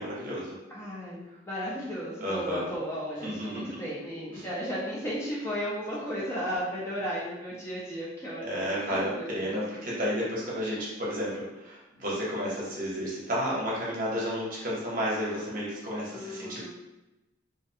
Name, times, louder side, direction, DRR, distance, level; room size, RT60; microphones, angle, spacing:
voice 1, 0.0-0.5 2.2-2.7 3.2-3.7 4.3-4.5 8.4-16.7, equal, 45° right, -6 dB, 0.7 m, -32 dB
voice 2, 0.7-9.5 16.1-16.7, equal, 15° left, -7 dB, 0.4 m, -35 dB
2.4 x 2.1 x 2.6 m, 1.0 s
head